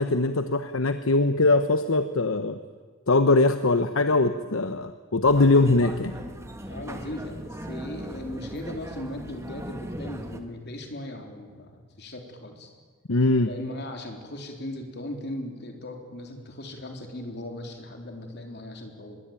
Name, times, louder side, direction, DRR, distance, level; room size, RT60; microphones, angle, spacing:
voice 1, 0.0-2.6 3.1-6.1 13.1-13.5, left 2 dB, 85° left, 10 dB, 1.0 m, -21 dB
sound 1, 5.2-10.4, right 1 dB, 15° right, 1.8 m, -38 dB
voice 2, 6.7-12.7 13.4-19.2, left 1 dB, 55° left, 3 dB, 3.8 m, -38 dB
25.0 x 21.0 x 9.0 m, 1.5 s
head